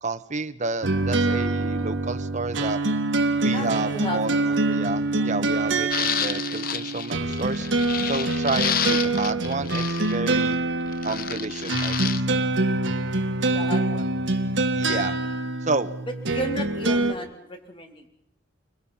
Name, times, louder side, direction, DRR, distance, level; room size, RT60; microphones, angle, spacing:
voice 1, 0.0-2.8 3.4-7.7 8.1-10.6 11.0-12.5 14.7-15.2 15.6-15.9, right 3 dB, 40° right, 9 dB, 1.3 m, -30 dB
sound 1, 0.8-17.1, right 2 dB, 80° right, 1.6 m, -25 dB
voice 2, 3.5-4.5 5.2-5.3 13.5-14.1 16.3-18.1, equal, 30° left, 3 dB, 3.8 m, -34 dB
sound 2, 5.9-10.5 10.9-12.2, left 9 dB, 50° left, 1.0 m, -29 dB
30.0 x 21.5 x 5.8 m, 0.73 s
head